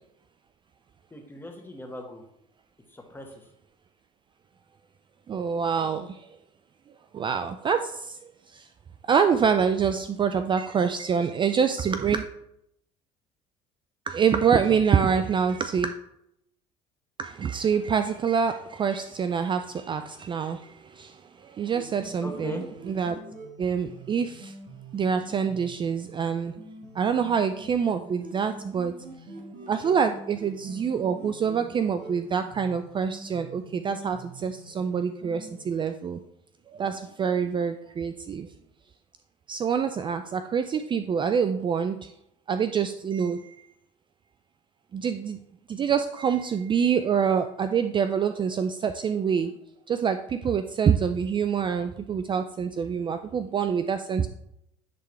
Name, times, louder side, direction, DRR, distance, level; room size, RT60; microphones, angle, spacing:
voice 1, 1.1-2.3 2.9-3.5 22.2-22.6, left 1 dB, 15° left, 2 dB, 1.4 m, -39 dB
voice 2, 5.3-6.3 7.1-8.7 9.1-12.3 14.1-15.9 17.2-22.6 22.9-23.2 23.6-24.6 24.9-26.5 26.9-28.9 29.7-36.2 36.7-38.5 39.5-42.1 42.5-43.7 44.9-45.4 45.7-49.5 49.9-54.3, right 6 dB, 30° right, 9 dB, 0.4 m, -26 dB
sound 1, 21.7-35.6, right 2 dB, 55° right, 1.7 m, -45 dB
10.5 x 3.6 x 3.2 m, 0.78 s
supercardioid pair, 85°, 16 cm